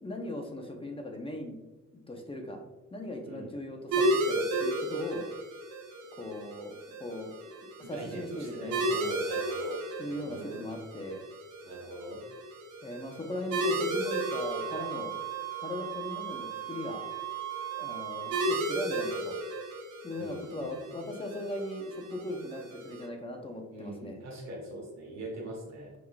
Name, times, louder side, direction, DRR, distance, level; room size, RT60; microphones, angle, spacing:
voice 1, 0.0-1.6 2.1-2.6 2.9-5.3 6.1-6.7 7.0-7.3 7.8-9.0 10.0-11.2 12.8-15.1 15.5-17.0 17.8-19.4 20.0-24.2, left 1 dB, 20° left, 3 dB, 0.7 m, -38 dB
voice 2, 3.3-3.6 7.8-9.8 10.1-10.8 11.6-12.2 20.2-21.0 23.7-25.9, right 1 dB, 60° right, -1 dB, 1.2 m, -42 dB
sound 1, 3.9-23.1, right 1 dB, 80° right, 0.8 m, -35 dB
sound 2, 14.0-18.6, right 13 dB, 10° right, 0.8 m, -38 dB
4.9 x 3.6 x 2.3 m, 1.1 s
cardioid pair, 90°, 30 cm